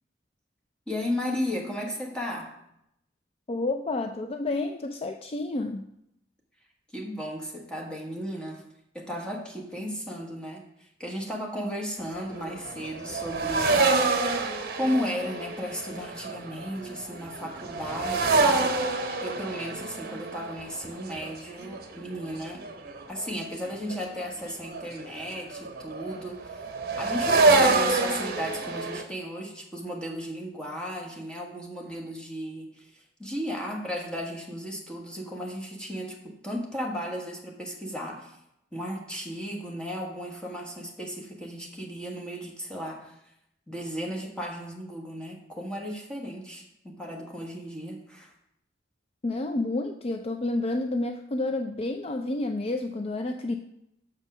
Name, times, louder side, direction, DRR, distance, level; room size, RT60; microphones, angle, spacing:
voice 1, 0.9-2.5 6.9-8.6 8.9-10.6 11.0-14.2 14.7-18.7 19.2-22.6 23.1-26.6 27.0-38.3 38.7-43.2 43.7-48.3, equal, 5° left, -2 dB, 1.5 m, -35 dB
voice 2, 3.5-5.9 49.2-53.5, left 2 dB, 35° left, 5 dB, 0.4 m, -30 dB
sound 1, 12.0-23.3 23.6-29.0, right 3 dB, 55° right, 0.9 m, -27 dB
6.6 x 5.5 x 6.1 m, 0.80 s
head